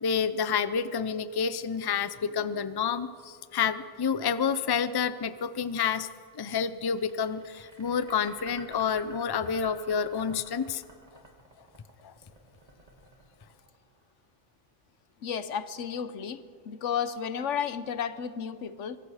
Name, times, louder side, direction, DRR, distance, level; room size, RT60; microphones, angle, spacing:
voice 1, 0.0-6.1 6.3-10.8 12.0-12.1, left 6 dB, 25° left, 13 dB, 0.5 m, -29 dB
sound 1, 7.0-14.1, right 2 dB, 30° right, 2.9 m, -51 dB
voice 2, 15.2-19.0, left 7 dB, 80° left, 13 dB, 1.2 m, -33 dB
25.0 x 22.5 x 5.0 m, 2.2 s
omnidirectional pair, 1.2 m